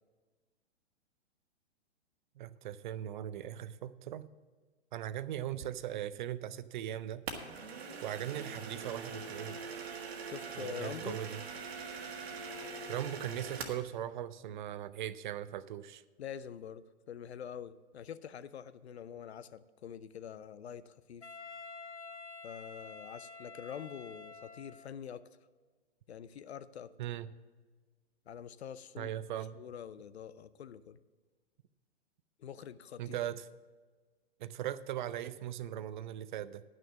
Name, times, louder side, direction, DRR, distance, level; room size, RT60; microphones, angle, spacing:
voice 1, 2.4-4.3 4.9-7.3 8.0-9.6 10.6-11.4 12.9-16.0 27.0-27.3 29.0-29.6 33.0-33.5 34.4-36.6, right 11 dB, 45° right, 16 dB, 0.5 m, -39 dB
sound 1, 7.3-13.9, right 5 dB, 65° right, 1.6 m, -43 dB
voice 2, 10.3-11.2 16.2-21.3 22.4-25.3 26.1-26.9 28.3-29.1 29.6-31.0 32.4-33.2, left 8 dB, 70° left, 15 dB, 0.6 m, -45 dB
Wind instrument woodwind instrument, 21.2-25.0, left 4 dB, 85° left, 1.0 m, -49 dB
10.5 x 6.4 x 7.2 m, 1.4 s
figure-of-eight pair, 120°, 34 cm